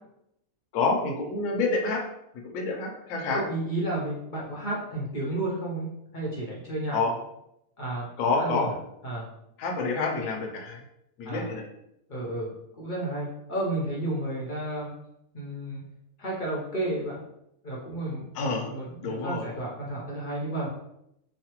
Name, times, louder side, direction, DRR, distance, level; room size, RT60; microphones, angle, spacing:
voice 1, 0.7-2.0 2.4-3.4 6.9-7.1 8.2-8.7 9.6-10.8 11.2-11.7 18.3-18.7 19.0-19.5, left 3 dB, 75° left, 1 dB, 1.0 m, -28 dB
voice 2, 3.3-5.9 6.1-7.0 7.8-8.1 8.4-8.7 9.0-9.3 11.2-11.5 12.1-12.5 12.8-14.9 15.3-15.8 16.2-17.2 17.6-20.7, right 1 dB, 50° left, -4 dB, 0.6 m, -32 dB
3.1 x 2.1 x 2.9 m, 0.80 s
omnidirectional pair, 1.5 m